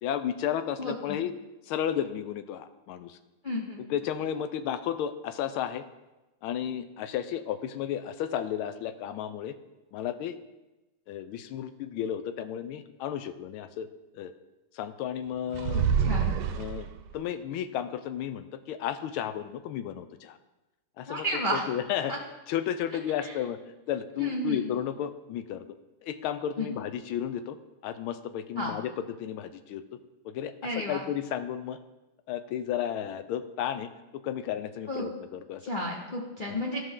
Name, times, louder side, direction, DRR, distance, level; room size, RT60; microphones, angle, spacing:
voice 1, 0.0-1.3 1.6-3.2 3.8-5.8 6.4-9.5 9.9-10.4 11.1-13.9 14.1-14.3 14.7-15.9 16.6-20.4 21.0-21.3 21.5-22.1 22.5-23.6 23.9-25.6 26.0-27.6 27.8-29.8 30.2-30.5 30.9-31.8 32.3-35.6 36.5-36.6, left 10 dB, 80° left, 11 dB, 1.4 m, -33 dB
voice 2, 0.8-1.2 3.4-3.8 15.7-16.4 21.1-21.6 22.1-22.2 23.2-23.3 24.2-24.6 26.6-26.7 28.6-28.7 30.6-31.0 34.9-35.1 35.6-36.8, equal, 50° left, -3 dB, 0.5 m, -32 dB
sound 1, 15.5-17.2, right 7 dB, 85° right, 1.5 m, -27 dB
14.0 x 5.5 x 3.7 m, 1.0 s
omnidirectional pair, 2.4 m